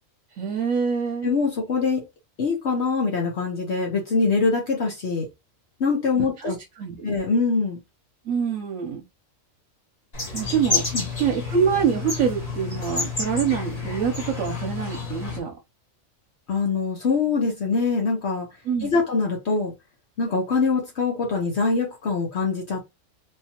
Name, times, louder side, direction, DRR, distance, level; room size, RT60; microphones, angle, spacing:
voice 1, 0.4-1.3 6.2-6.5 6.8-7.1 8.3-9.0 10.3-10.8 11.2-15.5 18.7-19.0, right 7 dB, 75° right, 1.1 m, -25 dB
voice 2, 1.2-2.0 2.4-5.3 5.8-6.6 7.0-7.8 10.9-11.0 16.5-18.5 18.8-19.7 20.2-22.8, left 4 dB, 55° left, 1.1 m, -23 dB
sound 1, 10.1-15.4, left 4 dB, 30° left, 1.3 m, -29 dB
3.8 x 2.7 x 2.8 m
omnidirectional pair, 1.4 m